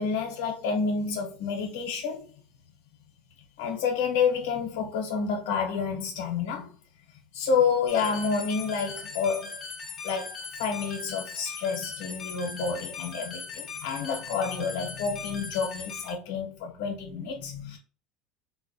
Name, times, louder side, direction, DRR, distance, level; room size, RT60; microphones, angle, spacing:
voice 1, 0.0-2.2 3.6-6.7 7.3-9.6 10.0-17.8, left 5 dB, 90° left, 0.7 m, -29 dB
sound 1, 7.9-16.1, left 5 dB, 20° left, 0.5 m, -39 dB
4.0 x 2.1 x 2.5 m
cardioid pair, 160°, 0 cm